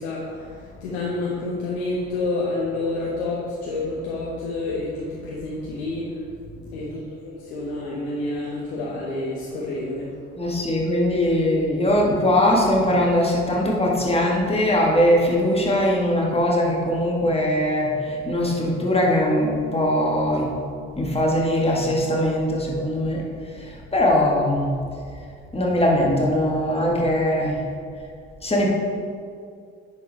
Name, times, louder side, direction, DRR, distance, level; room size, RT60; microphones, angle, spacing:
voice 1, 0.0-6.2 6.7-10.1, left 2 dB, 80° left, -5 dB, 1.0 m, -29 dB
voice 2, 10.4-20.6 21.0-24.8 25.5-27.7 28.4-28.7, left 1 dB, 20° left, -2 dB, 1.9 m, -21 dB
9.9 x 4.3 x 4.1 m, 2.2 s
hypercardioid pair, 50°, 32 cm